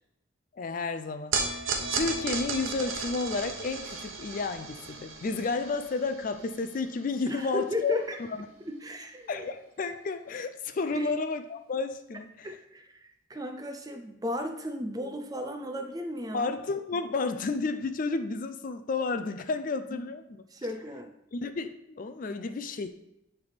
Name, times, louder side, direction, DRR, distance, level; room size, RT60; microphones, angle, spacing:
voice 1, 0.5-8.0 8.3-8.5 9.3-12.5 16.3-20.2 21.3-22.9, left 4 dB, 40° left, 9 dB, 0.3 m, -32 dB
sound 1, 1.3-7.7, right 4 dB, 75° right, 1.0 m, -35 dB
voice 2, 7.3-8.2 8.7-9.4 10.9-11.1 12.4-16.5 19.9-20.0 20.5-21.1, left 1 dB, 20° right, 6 dB, 0.5 m, -35 dB
9.6 x 3.5 x 4.0 m, 0.83 s
head